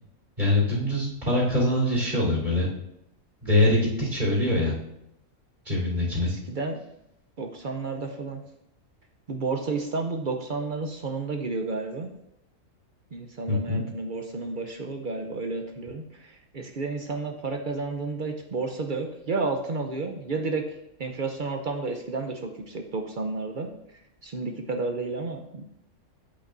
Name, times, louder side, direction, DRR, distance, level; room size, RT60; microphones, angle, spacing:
voice 1, 0.4-2.7 3.4-4.7 5.6-6.3 13.5-13.8, left 1 dB, 30° right, -5 dB, 3.4 m, -23 dB
voice 2, 6.2-6.8 7.4-8.4 9.3-12.1 13.1-25.6, right 3 dB, 50° right, 4 dB, 0.6 m, -31 dB
8.5 x 8.1 x 2.6 m, 0.80 s
omnidirectional pair, 1.5 m